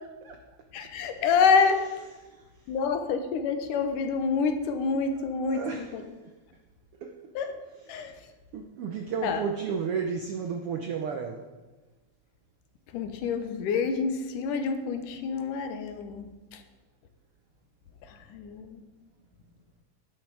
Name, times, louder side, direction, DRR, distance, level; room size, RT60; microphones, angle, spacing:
voice 1, 0.7-1.9 2.7-6.0 7.4-7.5 7.9-8.1 9.2-9.4 12.9-16.6 18.0-18.8, left 5 dB, 85° left, 7 dB, 2.6 m, -27 dB
voice 2, 5.2-5.9 7.0-7.3 8.5-11.5, right 6 dB, 80° right, 5 dB, 1.3 m, -33 dB
11.0 x 11.0 x 4.8 m, 1.2 s
omnidirectional pair, 3.6 m